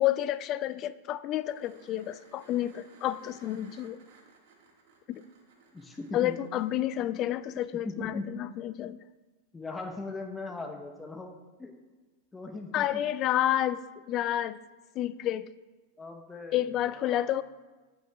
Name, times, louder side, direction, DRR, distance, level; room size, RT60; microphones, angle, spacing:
voice 1, 0.0-4.0 5.1-5.2 6.1-9.0 12.7-14.6 15.0-15.5 16.5-17.4, left 12 dB, 40° left, 15 dB, 0.3 m, -30 dB
sound 1, 1.5-7.0 9.7-9.8, right 4 dB, 65° right, 1.7 m, -59 dB
voice 2, 5.7-6.4 7.8-8.4 9.5-11.7 12.3-12.9 16.0-17.4, left 3 dB, 15° left, 3 dB, 0.9 m, -39 dB
12.0 x 5.6 x 2.3 m, 1.2 s
hypercardioid pair, 110°, 0 cm